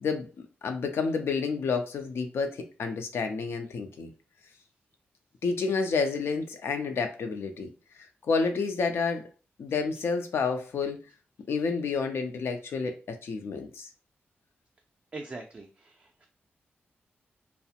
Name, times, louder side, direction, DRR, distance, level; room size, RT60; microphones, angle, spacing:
voice 1, 0.0-4.1 5.4-7.7 8.2-9.3 9.6-11.0 11.5-13.9, left 4 dB, 80° left, 6 dB, 0.5 m, -30 dB
voice 2, 15.1-16.3, right 3 dB, 30° right, 2 dB, 0.3 m, -42 dB
2.4 x 2.0 x 2.7 m, 0.33 s
wide cardioid pair, 100°, 4 cm